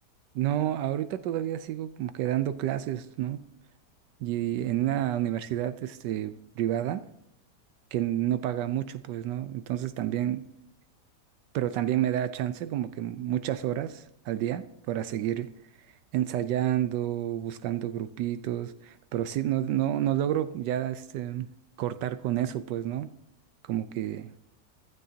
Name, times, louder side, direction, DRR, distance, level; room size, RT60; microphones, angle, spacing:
voice 1, 0.3-3.4 4.2-7.1 7.9-10.5 11.5-15.5 16.1-21.5 21.8-23.1 23.7-24.3, right 12 dB, 80° right, 13 dB, 1.2 m, -29 dB
15.0 x 13.0 x 2.8 m, 0.81 s
omnidirectional pair, 1.9 m